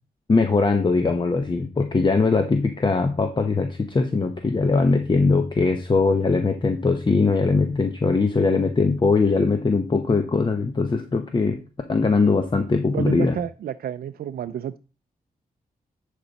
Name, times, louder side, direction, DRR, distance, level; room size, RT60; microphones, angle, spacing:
voice 1, 0.3-11.6 11.9-13.4, left 4 dB, 30° left, 6 dB, 0.9 m, -21 dB
voice 2, 12.9-14.8, right 10 dB, 80° right, 10 dB, 0.4 m, -30 dB
10.0 x 5.1 x 4.0 m, 0.33 s
cardioid pair, 90°, 16 cm